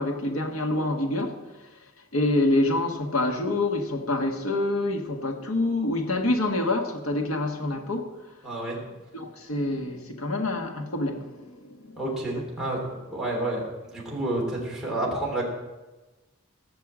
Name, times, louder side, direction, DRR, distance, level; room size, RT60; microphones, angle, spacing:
voice 1, 0.0-1.7 2.1-8.3 9.1-12.0 12.4-12.8 13.2-13.4, left 2 dB, 90° left, 4 dB, 1.8 m, -27 dB
voice 2, 8.4-8.8 12.0-13.6 13.9-15.5, right 1 dB, 5° right, -5 dB, 3.3 m, -29 dB
16.0 x 6.9 x 7.5 m, 1.2 s
head